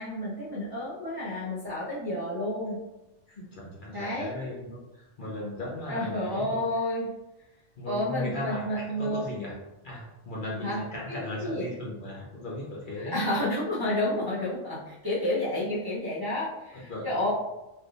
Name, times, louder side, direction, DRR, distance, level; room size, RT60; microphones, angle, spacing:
voice 1, 0.0-2.8 3.9-4.3 5.9-7.1 7.8-9.3 10.6-10.8 11.1-11.7 13.0-17.3, left 1 dB, 20° right, -10 dB, 0.7 m, -30 dB
voice 2, 3.3-6.6 7.8-9.5 9.8-13.2 16.9-17.2, left 2 dB, 50° left, -5 dB, 0.8 m, -37 dB
3.3 x 2.7 x 2.5 m, 0.99 s
omnidirectional pair, 1.2 m